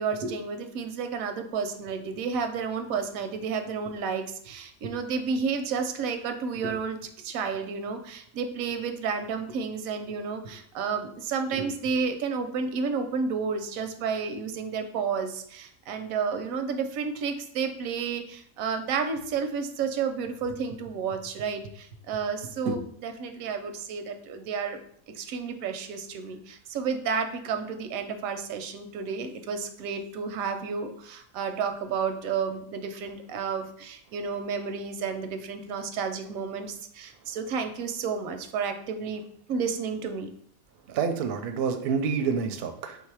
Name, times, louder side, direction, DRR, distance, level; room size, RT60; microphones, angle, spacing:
voice 1, 0.0-24.8 25.1-39.2 39.5-40.3, right 5 dB, 85° right, 7 dB, 1.0 m, -31 dB
voice 2, 40.9-43.0, right 6 dB, 65° right, 6 dB, 0.6 m, -28 dB
3.4 x 2.7 x 4.6 m, 0.67 s
omnidirectional pair, 1.4 m